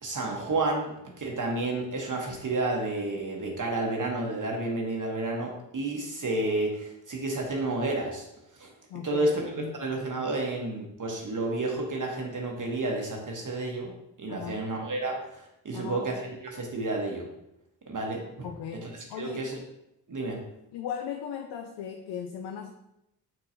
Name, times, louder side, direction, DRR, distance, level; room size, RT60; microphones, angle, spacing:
voice 1, 0.0-8.3 8.6-8.7 9.0-9.4 9.8-13.9 14.2-17.3 17.9-18.5 18.8-18.9 19.2-19.6 20.1-20.4, right 2 dB, 45° right, 0 dB, 1.0 m, -31 dB
voice 2, 8.9-9.8 14.3-14.6 15.7-16.1 18.4-19.5 20.7-22.7, left 8 dB, 70° left, 5 dB, 0.5 m, -38 dB
4.2 x 3.8 x 2.6 m, 0.84 s
supercardioid pair, 45°, 43 cm